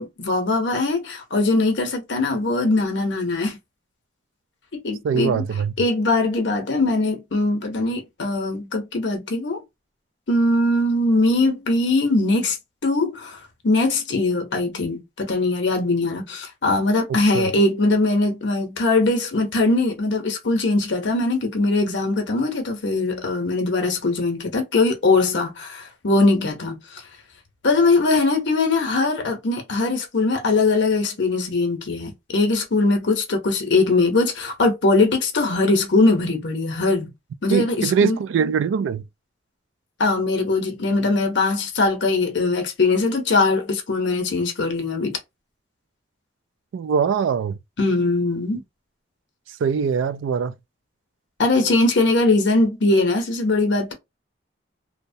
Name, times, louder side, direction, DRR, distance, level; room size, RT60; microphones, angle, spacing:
voice 1, 0.0-3.6 4.8-5.4 5.8-9.6 10.3-12.6 12.8-13.4 13.6-27.0 27.6-37.1 37.4-38.2 40.0-45.1 47.8-48.6 51.4-53.9, left 2 dB, 75° left, 0.7 m, -21 dB
voice 2, 5.0-5.7 17.3-17.5 37.5-39.0 46.7-47.6 49.6-50.5, right 6 dB, 90° right, 0.3 m, -22 dB
2.8 x 2.1 x 2.6 m
head